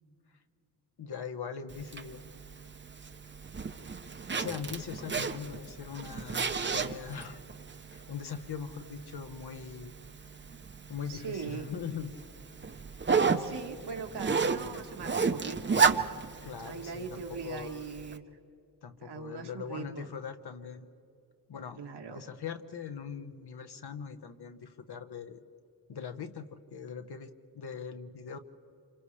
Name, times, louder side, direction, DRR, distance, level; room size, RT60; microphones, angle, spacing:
voice 1, 1.0-2.2 4.3-7.5 7.9-9.9 10.9-12.2 16.4-17.8 18.8-20.9 21.5-21.8 22.1-25.4 25.9-28.4, left 6 dB, 75° left, 8 dB, 1.2 m, -41 dB
Zipper (clothing), 1.7-18.2, right 5 dB, 30° right, 0.7 m, -33 dB
voice 2, 11.1-11.7 13.4-15.8 16.6-18.4 19.0-20.1 21.8-22.2, right 5 dB, 80° right, 3 dB, 1.7 m, -40 dB
30.0 x 27.5 x 3.3 m, 2.6 s
wide cardioid pair, 165°, 40 cm